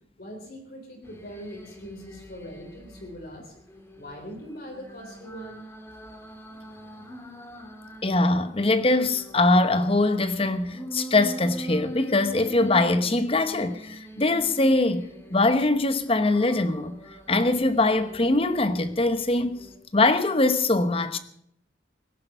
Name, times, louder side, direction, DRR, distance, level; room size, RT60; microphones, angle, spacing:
voice 1, 0.2-3.5 3.9-5.6, equal, 50° left, 3.6 m, -41 dB
sound 1, 1.0-3.1 3.6-8.1 8.5-15.5 16.0-19.0 19.5-19.8, right 1 dB, 15° left, 1.9 m, -42 dB
voice 2, 8.0-17.0 17.3-19.6 19.9-21.2, left 2 dB, 30° left, 1.0 m, -22 dB
18.5 x 10.5 x 6.7 m
head